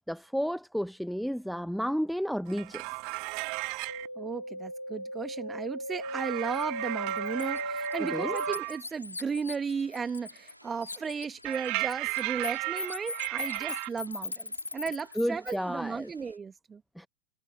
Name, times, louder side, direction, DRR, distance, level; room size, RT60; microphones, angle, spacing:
voice 1, 0.1-2.9 8.0-8.4 15.1-16.1 17.0-17.1, equal, ahead, 0.8 m, -32 dB
sound 1, 2.5-4.1 6.0-8.8 11.4-13.9, right 30 dB, 45° right, 0.5 m, -35 dB
sound 2, 3.9-13.3 13.5-14.4 14.7-15.7 16.1-16.2, equal, 90° right, 3.5 m, -39 dB
voice 2, 4.2-16.8, right 5 dB, 15° right, 1.5 m, -35 dB
Bird, 6.5-6.7 7.1-10.6 10.8-15.6, left 3 dB, 80° left, 0.7 m, -39 dB
figure-of-eight pair, 90°, 0 cm